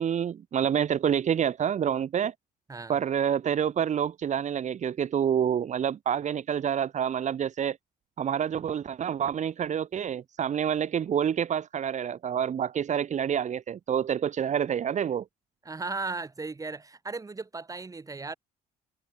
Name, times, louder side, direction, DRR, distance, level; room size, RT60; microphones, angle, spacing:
voice 1, 0.0-2.3 2.9-7.8 8.2-15.2, right 8 dB, 45° right, 2.2 m, -27 dB
voice 2, 15.6-18.3, right 3 dB, 20° right, 5.9 m, -36 dB
cardioid pair, 110°, 17 cm